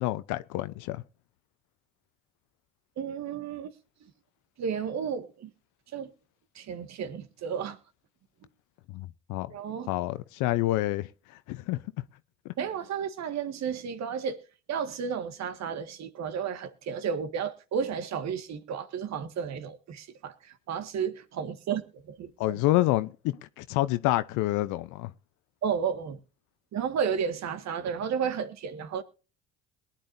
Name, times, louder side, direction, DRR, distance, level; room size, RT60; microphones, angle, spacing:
voice 1, 0.0-1.0 8.9-9.5 9.9-11.1 11.5-11.8 12.4-12.5 22.4-23.1 23.6-25.1, left 16 dB, 70° left, 0.8 m, -27 dB
voice 2, 3.0-3.7 4.0-4.1 4.6-5.5 5.9-6.1 6.6-7.8 9.5-9.9 12.6-14.4 14.7-22.6 25.6-26.2 26.7-29.0, right 7 dB, 55° right, 1.9 m, -32 dB
22.0 x 10.0 x 2.7 m
hypercardioid pair, 60°, 32 cm